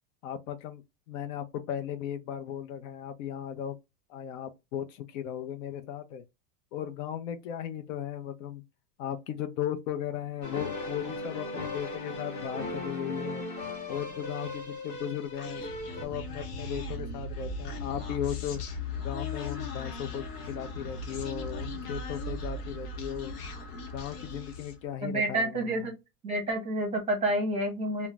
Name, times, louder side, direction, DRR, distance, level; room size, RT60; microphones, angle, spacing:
voice 1, 0.2-0.8 1.1-3.8 4.1-6.2 6.7-8.6 9.0-13.5 13.9-15.6 16.0-18.6 19.0-23.3 23.9-25.8, left 10 dB, 60° left, 0.5 m, -36 dB
sound 1, 10.4-16.1, left 2 dB, 25° left, 0.7 m, -37 dB
Human voice, 15.4-24.8, left 3 dB, 80° left, 1.0 m, -38 dB
voice 2, 25.0-25.9 26.2-28.1, right 1 dB, 15° right, 0.7 m, -29 dB
2.4 x 2.0 x 3.1 m
supercardioid pair, 160°, 46 cm